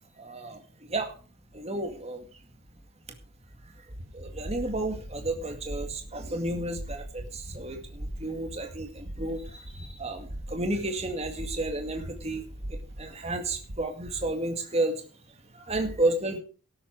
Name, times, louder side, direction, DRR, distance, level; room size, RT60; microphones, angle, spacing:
voice 1, 0.2-0.6 0.9-1.1 1.5-2.2 4.1-12.4 12.7-14.9 15.5-16.4, right 2 dB, 30° right, 5 dB, 2.2 m, -32 dB
sound 1, 3.9-13.8, right 1 dB, 50° right, 1.6 m, -41 dB
14.0 x 12.0 x 4.7 m, 0.38 s
head